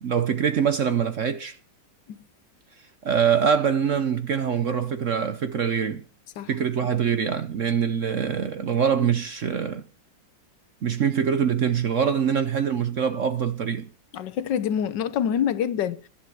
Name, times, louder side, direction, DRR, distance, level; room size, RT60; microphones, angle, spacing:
voice 1, 0.0-1.6 3.0-6.0 6.5-9.8 10.8-13.9, right 7 dB, 55° right, 1.0 m, -24 dB
voice 2, 14.1-16.1, left 9 dB, 75° left, 1.4 m, -26 dB
14.0 x 11.0 x 4.7 m
omnidirectional pair, 2.0 m